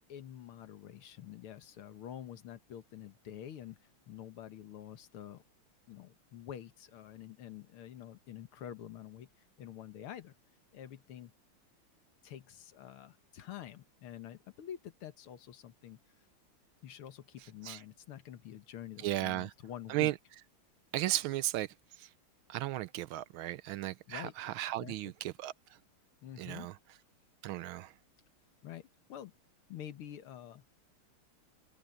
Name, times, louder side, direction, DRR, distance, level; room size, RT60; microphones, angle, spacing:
voice 1, 0.1-5.4 5.9-9.3 9.6-10.3 10.7-11.3 12.2-16.0 16.8-20.1 24.1-24.3 24.8-25.0 26.2-26.7 28.6-29.3 29.7-30.6, left 10 dB, 75° left, 2.0 m, -47 dB
voice 2, 19.0-19.5 19.9-20.1 20.9-22.1 22.5-25.5 26.4-26.7 27.4-27.9, right 15 dB, 75° right, 1.3 m, -35 dB
omnidirectional pair, 2.4 m